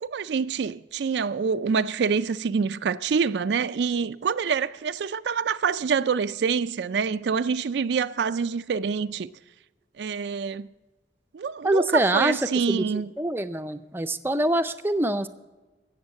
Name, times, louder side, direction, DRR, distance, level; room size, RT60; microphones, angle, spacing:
voice 1, 0.0-9.3 10.0-10.7 11.3-13.1, right 6 dB, 70° right, 0.4 m, -26 dB
voice 2, 11.6-12.4 12.7-12.8 13.2-15.3, right 1 dB, 15° right, 0.5 m, -24 dB
14.0 x 8.3 x 7.5 m
head